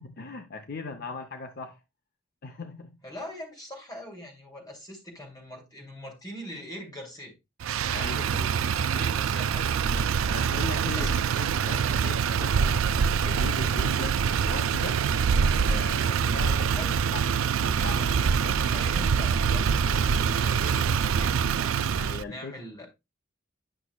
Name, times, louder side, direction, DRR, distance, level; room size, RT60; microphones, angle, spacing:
voice 1, 0.0-1.8 2.4-3.0 7.8-8.5 10.3-12.9 13.3-15.1 15.7-17.2 17.6-18.7 22.0-22.9, left 4 dB, 50° left, 0.7 m, -39 dB
voice 2, 3.0-7.3 8.8-11.2 16.6-17.1 17.7-18.2 18.7-21.8 22.3-22.9, left 1 dB, 20° left, 2.7 m, -43 dB
Motor vehicle (road), 7.6-22.2, right 6 dB, 90° right, 0.4 m, -25 dB
10.0 x 6.1 x 2.2 m
head